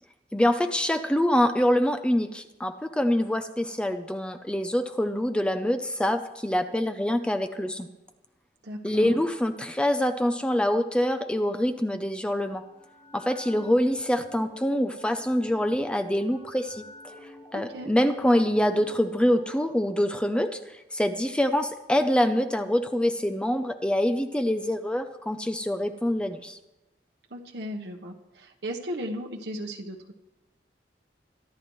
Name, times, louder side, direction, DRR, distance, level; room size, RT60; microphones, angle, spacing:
voice 1, 0.3-7.9 8.8-12.6 13.1-16.8 17.5-20.6 20.9-26.6, left 1 dB, 5° left, 7 dB, 0.6 m, -25 dB
voice 2, 8.6-9.2 17.5-17.9 27.3-30.1, equal, 70° right, 1 dB, 1.1 m, -36 dB
sound 1, 12.3-19.7, left 2 dB, 50° left, 4.2 m, -50 dB
25.0 x 10.5 x 3.2 m, 0.97 s
head